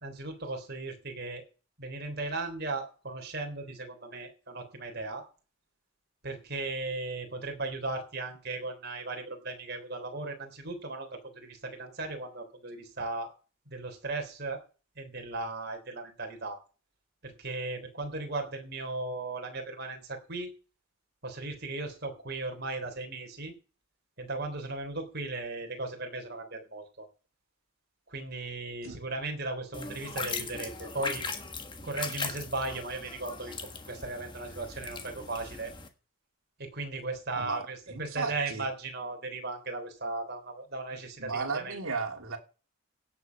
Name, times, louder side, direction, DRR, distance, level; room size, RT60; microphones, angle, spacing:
voice 1, 0.0-1.4 1.8-5.2 6.2-13.3 13.7-14.6 15.0-16.6 17.2-20.5 21.2-23.5 24.2-27.1 28.1-31.2 31.8-33.5 33.9-35.7 36.6-41.8, right 2 dB, 45° right, 4 dB, 3.6 m, -37 dB
sound 1, 29.7-35.9, left 4 dB, 20° left, 1.4 m, -39 dB
voice 2, 37.3-38.7 41.2-42.4, right 4 dB, 70° right, 3 dB, 2.7 m, -35 dB
16.5 x 7.5 x 5.9 m, 0.35 s
head